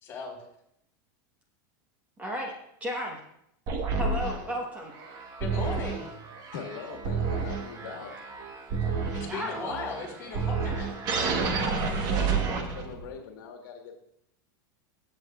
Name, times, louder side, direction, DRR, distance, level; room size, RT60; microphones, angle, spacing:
voice 1, 0.0-0.4 5.4-6.0 9.1-10.9, left 4 dB, 25° left, -4 dB, 3.7 m, -37 dB
voice 2, 2.2-2.5 2.8-3.2 4.0-4.9 9.2-9.5 11.6-11.8, equal, 15° right, 0 dB, 1.1 m, -33 dB
sound 1, 3.7-13.1, right 4 dB, 35° right, 1.2 m, -30 dB
voice 3, 6.5-8.1 11.2-14.0, left 6 dB, 75° left, 3 dB, 1.5 m, -42 dB
16.0 x 7.8 x 2.4 m, 0.76 s
supercardioid pair, 155°, 11 cm